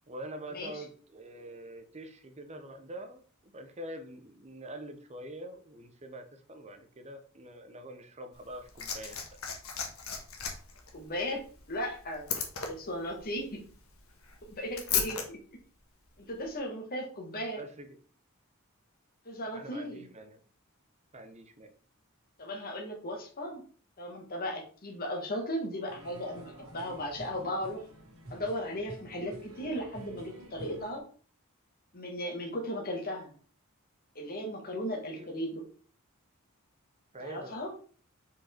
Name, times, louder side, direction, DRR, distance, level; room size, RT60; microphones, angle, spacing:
voice 1, 0.1-9.2 17.5-18.0 19.5-20.4 21.1-21.7 35.2-35.3 37.1-37.6, right 1 dB, 30° right, 6 dB, 1.0 m, -45 dB
Liquid, 8.3-15.3 16.3-16.4, left 6 dB, 70° left, 1.4 m, -37 dB
voice 2, 10.9-11.4 11.7-12.3 12.6-13.6 14.4-15.4 16.2-17.6 19.3-20.1 22.4-23.6 24.0-27.8 28.3-31.0 31.9-33.3 34.2-35.6 37.2-37.7, equal, 45° left, 1 dB, 1.7 m, -36 dB
sound 1, 25.9-31.0, right 1 dB, 80° right, 2.1 m, -49 dB
5.4 x 4.7 x 4.4 m, 0.42 s
head